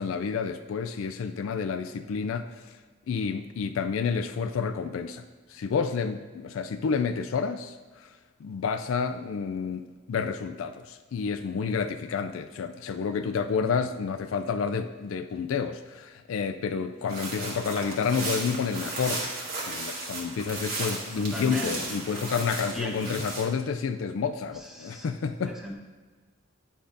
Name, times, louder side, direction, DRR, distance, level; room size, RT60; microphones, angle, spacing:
voice 1, 0.0-2.8 3.1-5.2 5.5-8.1 8.4-9.8 10.1-19.3 19.7-25.6, left 5 dB, 70° left, 9 dB, 0.4 m, -30 dB
sound 1, 17.1-23.5, right 2 dB, 45° right, 1.5 m, -35 dB
voice 2, 21.2-21.8 22.7-23.1 24.6-25.1 25.4-25.7, equal, ahead, -2 dB, 0.9 m, -37 dB
9.2 x 5.0 x 2.6 m, 1.4 s
head